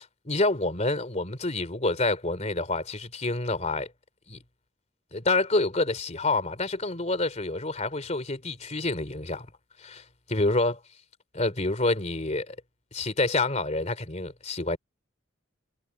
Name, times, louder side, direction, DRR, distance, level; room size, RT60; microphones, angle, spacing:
voice 1, 0.0-3.9 4.3-4.4 5.1-9.5 9.8-10.0 10.3-10.8 11.3-12.5 12.9-14.8, left 2 dB, 35° left, 3.3 m, -27 dB
head